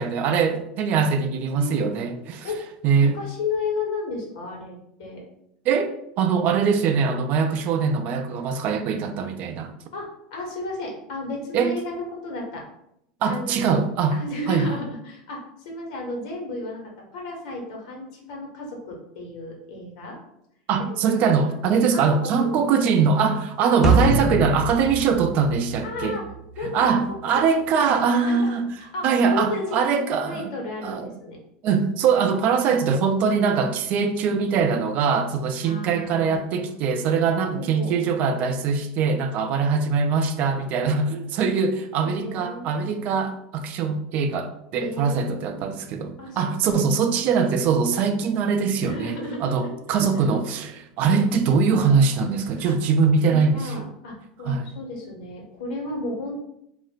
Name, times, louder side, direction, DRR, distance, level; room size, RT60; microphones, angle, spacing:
voice 1, 0.0-2.5 2.8-3.2 5.7-9.7 11.5-11.8 13.2-14.2 14.5-14.7 20.7-26.2 26.6-28.7 29.0-30.5 30.8-31.1 31.6-53.8 54.5-54.6, right 5 dB, 50° right, 7 dB, 0.4 m, -22 dB
voice 2, 1.5-2.1 2.4-2.6 3.0-5.2 7.4-7.5 9.9-12.6 13.2-13.7 14.1-16.8 17.1-20.2 20.8-21.0 21.9-22.9 25.8-26.2 26.6-26.9 27.7-27.9 28.2-29.8 30.2-31.4 35.6-36.7 37.5-37.9 42.0-43.2 44.8-45.7 46.2-46.8 48.8-49.7 52.6-52.7 53.1-56.4, left 2 dB, 75° left, 0 dB, 1.1 m, -33 dB
sound 1, 23.8-26.3, right 3 dB, 15° right, 0.7 m, -23 dB
2.4 x 2.1 x 3.9 m, 0.76 s
hypercardioid pair, 100°, 3 cm